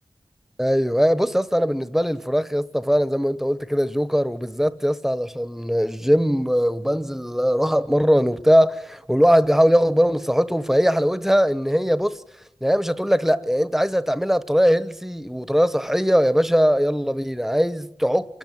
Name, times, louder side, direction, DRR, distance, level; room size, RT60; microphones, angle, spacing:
voice 1, 0.6-12.2 12.6-18.4, equal, 5° right, 1.2 m, -20 dB
26.5 x 13.5 x 9.5 m
cardioid pair, 40°, 11 cm